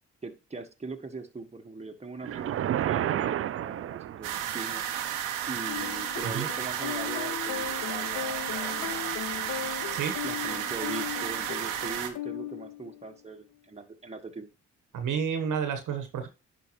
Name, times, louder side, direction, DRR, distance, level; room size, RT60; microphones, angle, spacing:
voice 1, 0.2-4.8 5.5-9.2 10.2-14.5, right 3 dB, 20° right, 4 dB, 1.5 m, -41 dB
sound 1, 2.2-4.6, right 11 dB, 45° right, 0.4 m, -30 dB
sound 2, 4.2-12.1, right 10 dB, 90° right, 1.0 m, -33 dB
sound 3, 5.7-13.1, left 12 dB, 70° left, 0.5 m, -38 dB
voice 2, 14.9-16.3, right 7 dB, 75° right, 8 dB, 1.3 m, -30 dB
11.0 x 4.6 x 3.1 m, 0.29 s
hypercardioid pair, 45°, 31 cm